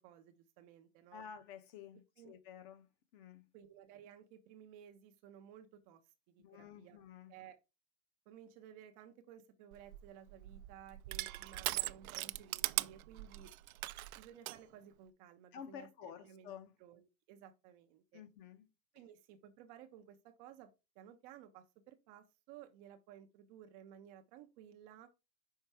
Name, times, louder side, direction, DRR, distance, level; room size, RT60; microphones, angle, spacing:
voice 1, 0.0-1.2 2.2-2.3 3.5-6.0 6.3-7.0 7.3-7.6 8.3-13.5 14.2-16.5 16.8-18.2 18.9-20.7 21.0-25.1, right 9 dB, 30° right, 0.5 m, -57 dB
voice 2, 1.1-2.9 3.1-3.4 6.4-7.3 15.5-16.8 18.1-18.7, left 8 dB, 40° left, 0.8 m, -51 dB
Crushing, 9.7-14.6, right 16 dB, 80° right, 0.5 m, -40 dB
5.5 x 4.4 x 4.5 m
supercardioid pair, 145°, 42 cm